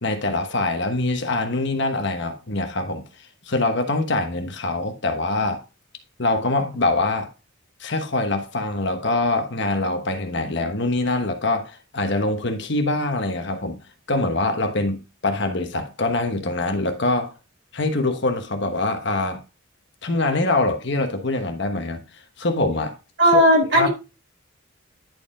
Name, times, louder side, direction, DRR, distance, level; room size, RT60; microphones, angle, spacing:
voice 1, 0.0-3.0 3.5-5.6 6.2-7.3 7.8-13.8 14.1-17.3 17.7-19.4 20.0-22.0 22.4-22.9 23.3-23.4 23.7-23.9, left 2 dB, 55° left, 1.2 m, -24 dB
voice 2, 23.2-23.9, equal, 60° right, 4.5 m, -15 dB
10.5 x 4.9 x 3.7 m
head